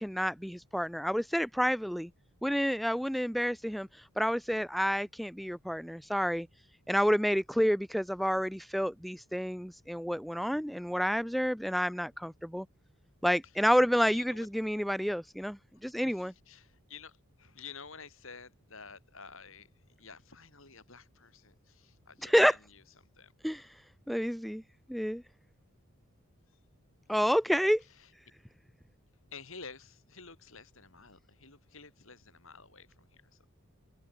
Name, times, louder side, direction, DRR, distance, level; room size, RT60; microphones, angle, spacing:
voice 1, 0.0-2.1 2.4-6.5 6.9-12.7 13.2-16.3 22.2-22.6 23.4-23.7 24.1-24.6 24.9-25.2 27.1-27.8, equal, ahead, 0.7 m, -29 dB
voice 2, 14.1-14.5 16.0-19.7 20.0-22.8 23.2-23.3 27.9-28.1 29.3-33.4, left 5 dB, 60° left, 6.1 m, -51 dB
head